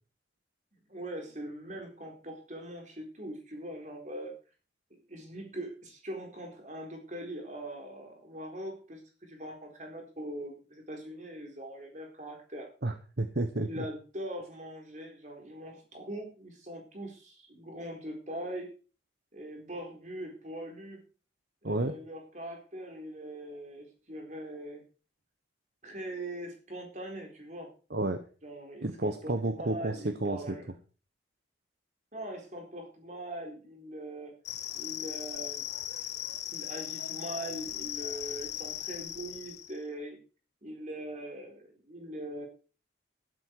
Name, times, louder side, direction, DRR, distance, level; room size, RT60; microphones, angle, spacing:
voice 1, 0.9-4.3 4.9-12.7 13.6-18.7 19.3-21.0 21.6-24.8 25.8-27.7 28.4-30.7 32.1-34.3 34.7-35.7 36.5-40.2 40.6-42.5, right 1 dB, 40° right, 2 dB, 4.1 m, -42 dB
voice 2, 12.8-13.8 21.6-21.9 27.9-28.2 28.8-30.6, right 2 dB, 60° right, 9 dB, 1.1 m, -31 dB
sound 1, 34.4-39.8, left 12 dB, 65° left, 1.1 m, -38 dB
12.0 x 12.0 x 4.6 m, 0.36 s
head